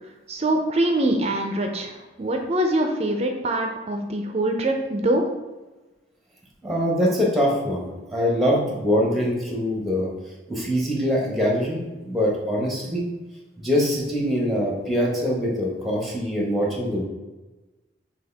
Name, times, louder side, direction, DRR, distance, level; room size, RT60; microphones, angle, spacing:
voice 1, 0.3-5.2, right 1 dB, 35° right, 4 dB, 0.4 m, -24 dB
voice 2, 6.6-10.1 10.5-13.1 13.6-17.1, equal, ahead, -3 dB, 1.0 m, -23 dB
6.3 x 2.3 x 3.4 m, 1.2 s
head